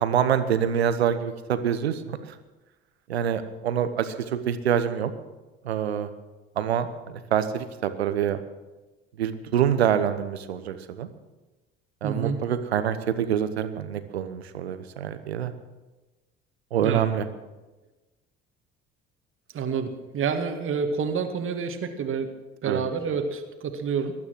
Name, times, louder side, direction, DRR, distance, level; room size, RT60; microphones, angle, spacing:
voice 1, 0.0-2.2 3.1-5.1 5.6-6.1 6.6-6.9 7.3-8.4 9.2-11.1 12.0-15.5 16.7-17.3 22.6-22.8, right 9 dB, 75° right, 11 dB, 1.0 m, -26 dB
voice 2, 12.0-12.4 16.8-17.1 19.5-22.3 22.6-24.1, right 6 dB, 40° right, 6 dB, 1.8 m, -28 dB
19.0 x 12.0 x 6.1 m, 1.1 s
figure-of-eight pair, 55°, 32 cm